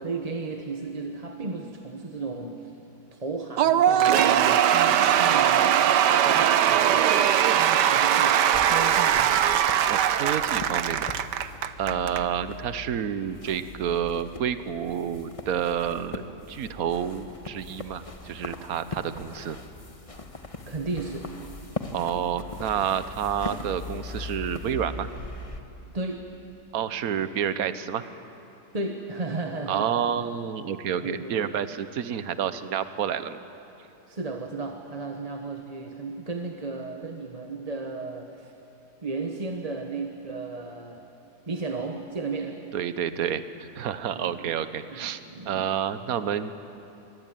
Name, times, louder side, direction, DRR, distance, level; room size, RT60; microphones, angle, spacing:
voice 1, 0.0-2.7 3.1-9.5 20.7-21.3 25.9-26.3 28.7-29.9 31.0-31.4 34.1-38.5 39.0-41.0 41.5-42.6 44.2-44.3 44.9-45.5, right 3 dB, 25° right, 3 dB, 1.2 m, -34 dB
Cheering / Applause / Crowd, 3.6-12.2, right 10 dB, 80° right, 1.4 m, -21 dB
sound 1, 8.5-25.6, left 2 dB, 20° left, 1.2 m, -40 dB
voice 2, 9.9-11.1 11.8-19.6 21.9-25.1 26.7-28.0 29.7-33.4 42.7-45.2 45.4-46.5, right 8 dB, 60° right, 12 dB, 1.4 m, -29 dB
24.5 x 23.0 x 9.1 m, 2.9 s
omnidirectional pair, 1.8 m